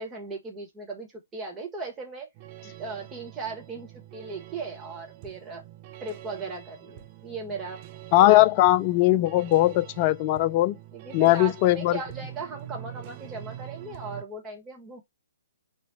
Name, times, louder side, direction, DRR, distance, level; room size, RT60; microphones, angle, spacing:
voice 1, 0.0-2.3 2.6-5.6 6.0-7.8 8.2-8.5 10.9-15.0, right 3 dB, 15° right, 1.7 m, -38 dB
sound 1, 2.3-14.2, right 12 dB, 30° right, 0.6 m, -45 dB
voice 2, 8.1-10.8 11.1-12.0, left 16 dB, 30° left, 0.3 m, -20 dB
4.5 x 2.7 x 4.3 m
figure-of-eight pair, 130°, 0 cm